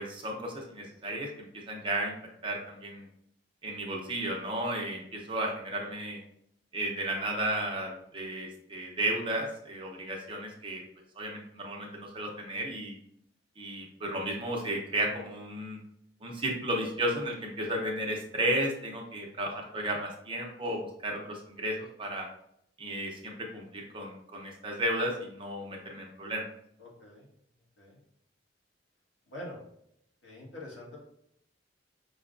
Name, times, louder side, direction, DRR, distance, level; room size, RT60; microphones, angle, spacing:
voice 1, 0.0-2.1 2.4-3.1 3.6-6.2 6.7-10.8 11.2-13.0 13.6-15.8 16.2-22.3 22.8-26.5, right 1 dB, 30° right, 0 dB, 0.8 m, -33 dB
voice 2, 26.8-27.3 27.8-28.0 29.3-29.6 30.2-31.0, left 1 dB, 90° left, -4 dB, 1.4 m, -44 dB
5.4 x 2.3 x 2.5 m, 0.72 s
head